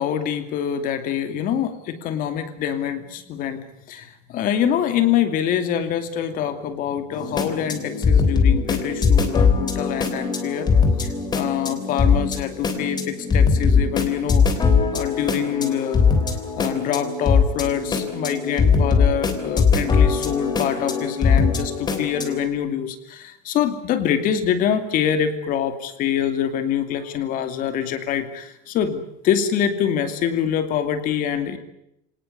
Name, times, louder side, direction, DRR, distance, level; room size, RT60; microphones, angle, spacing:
voice 1, 0.0-10.7 11.0-14.7 14.9-16.1 16.6-31.6, left 9 dB, 45° left, 9 dB, 2.6 m, -25 dB
sound 1, 7.1-22.4, left 5 dB, 20° left, 3.2 m, -21 dB
25.5 x 19.0 x 9.5 m, 0.80 s
cardioid pair, 160°, 19 cm